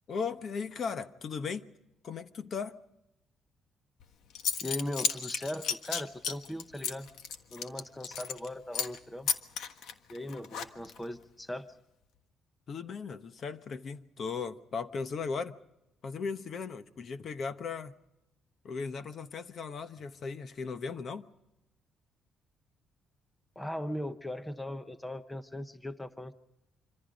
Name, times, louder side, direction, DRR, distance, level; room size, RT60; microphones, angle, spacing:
voice 1, 0.1-1.7 2.0-2.8 12.7-15.6 16.0-17.9 18.6-21.3, left 5 dB, 45° left, 1.0 m, -37 dB
Zipper (clothing) / Coin (dropping), 4.0-4.1 4.3-8.5 8.7-9.0 9.3-11.0, left 7 dB, 80° left, 1.4 m, -33 dB
voice 2, 4.6-7.1 7.5-9.3 10.1-11.8 23.6-26.3, left 1 dB, 5° left, 0.8 m, -39 dB
26.5 x 25.5 x 5.2 m
cardioid pair, 155°, 0 cm